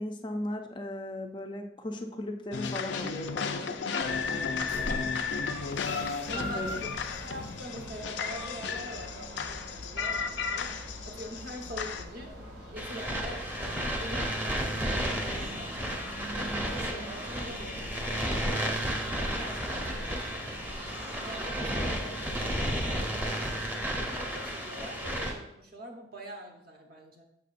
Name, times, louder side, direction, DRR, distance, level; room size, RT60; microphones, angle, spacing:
voice 1, 0.0-5.1 6.3-6.8, left 1 dB, 25° left, 4 dB, 0.5 m, -38 dB
sound 1, 2.5-12.0, left 5 dB, 80° left, 0.5 m, -34 dB
sound 2, 4.0-23.7, equal, 80° right, 2.2 m, -44 dB
voice 2, 6.3-6.9 7.2-10.7 11.0-12.4 12.7-13.4 14.0-15.7 16.3-18.6 19.0-20.3 21.2-22.5 24.0-27.2, equal, 55° right, 2 dB, 1.1 m, -44 dB
sound 3, 12.8-25.3, equal, 10° right, 0.8 m, -33 dB
6.7 x 6.5 x 2.5 m, 0.77 s
head